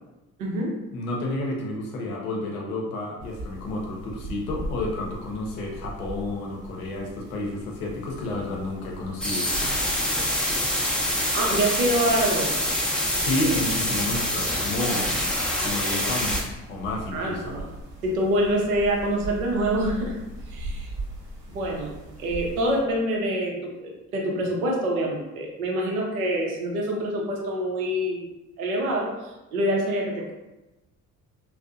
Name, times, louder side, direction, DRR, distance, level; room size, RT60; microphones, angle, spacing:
voice 1, 0.4-0.7 11.3-12.5 17.1-17.7 18.0-20.2 20.5-20.9 21.5-21.9 22.2-28.2 28.6-30.3, right 1 dB, 85° right, -1 dB, 0.5 m, -26 dB
voice 2, 0.9-9.5 13.1-15.2 15.6-17.6, left 2 dB, 80° left, -1 dB, 0.6 m, -30 dB
sound 1, 3.2-22.8, right 1 dB, 60° right, 0.9 m, -39 dB
sound 2, 9.2-16.4, equal, ahead, 0.4 m, -25 dB
2.5 x 2.0 x 2.4 m, 1.0 s
figure-of-eight pair, 45°, 42 cm